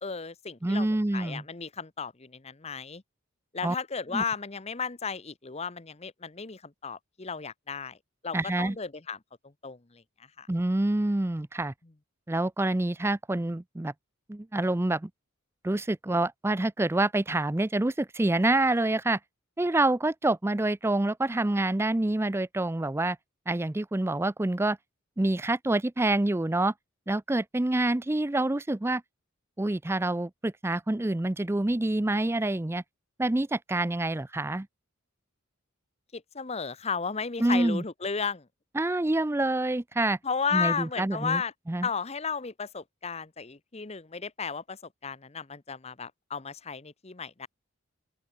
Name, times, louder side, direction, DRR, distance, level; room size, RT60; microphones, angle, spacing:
voice 1, 0.0-3.0 3.5-8.0 8.2-9.2 9.6-10.0 10.4-10.5 36.1-38.5 40.2-41.5 41.8-47.5, left 5 dB, 30° left, 0.9 m, -34 dB
voice 2, 0.6-1.4 3.6-3.8 4.1-4.2 8.3-8.8 10.5-11.7 12.3-13.9 14.3-15.1 15.6-19.2 19.6-23.2 23.5-24.8 25.2-26.7 27.1-29.0 29.6-32.8 33.2-34.7 37.4-37.8 38.8-40.2 40.5-41.4 41.7-41.9, right 2 dB, 10° right, 0.4 m, -27 dB
open air
head